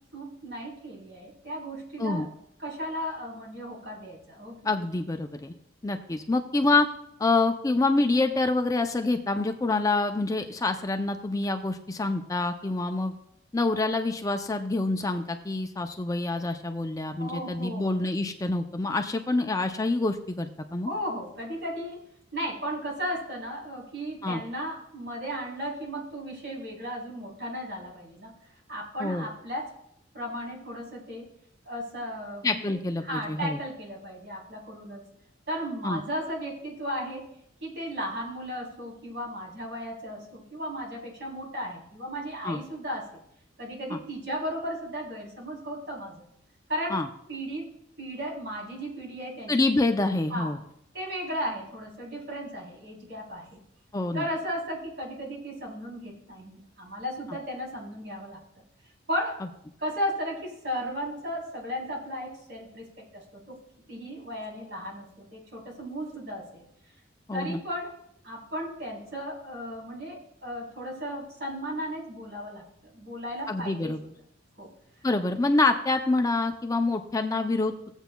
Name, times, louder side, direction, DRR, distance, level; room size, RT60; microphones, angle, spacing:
voice 1, 0.1-2.3 2.6-4.7 17.2-17.9 20.9-28.3 28.7-29.7 30.1-31.3 31.6-32.8 33.0-35.0 35.5-37.3 37.6-43.2 43.6-46.2 46.7-47.0 47.3-47.7 48.0-49.8 50.3-50.5 50.9-53.6 54.1-58.4 59.1-59.5 59.8-63.6 63.9-66.6 67.3-68.0 68.2-74.1 74.6-74.7, equal, 60° right, -3 dB, 3.3 m, -35 dB
voice 2, 4.6-5.5 5.8-6.9 7.2-13.1 13.5-20.9 24.2-24.4 29.0-29.3 32.4-33.6 35.8-36.0 42.4-42.6 43.9-44.0 46.9-47.1 49.5-50.6 53.9-54.3 67.3-67.6 73.5-74.0 75.0-77.7, left 2 dB, 20° left, 6 dB, 0.4 m, -26 dB
16.5 x 8.0 x 2.2 m, 0.74 s
head